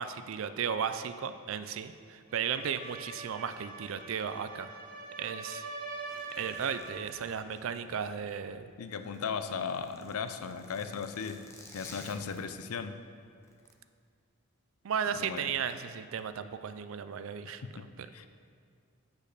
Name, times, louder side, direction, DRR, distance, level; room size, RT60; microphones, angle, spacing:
voice 1, 0.0-4.7 5.2-5.6 6.3-8.6 14.8-18.1, right 7 dB, 60° right, 11 dB, 0.4 m, -35 dB
sound 1, 2.3-7.2, right 3 dB, 40° right, 0.8 m, -44 dB
Zipper (clothing), 6.1-8.5 8.8-12.8 13.4-13.7, left 2 dB, 10° left, 0.7 m, -53 dB
voice 2, 8.8-11.5 11.7-12.9 15.1-15.5 17.6-17.8 18.1-18.3, left 6 dB, 75° left, 10 dB, 0.5 m, -37 dB
6.4 x 5.2 x 6.5 m, 2.2 s
head